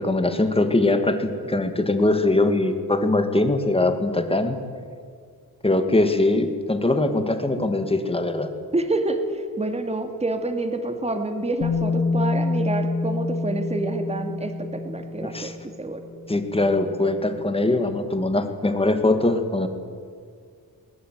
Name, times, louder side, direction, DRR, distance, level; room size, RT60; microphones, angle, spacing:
voice 1, 0.0-4.6 5.6-8.5 15.3-15.5 16.3-19.7, left 2 dB, 15° left, 7 dB, 2.1 m, -22 dB
voice 2, 8.7-16.0, right 2 dB, 15° right, 6 dB, 2.2 m, -27 dB
Bass guitar, 11.6-17.7, left 3 dB, 55° left, 2.7 m, -28 dB
22.5 x 20.5 x 9.4 m, 2.1 s
wide cardioid pair, 150°, 37 cm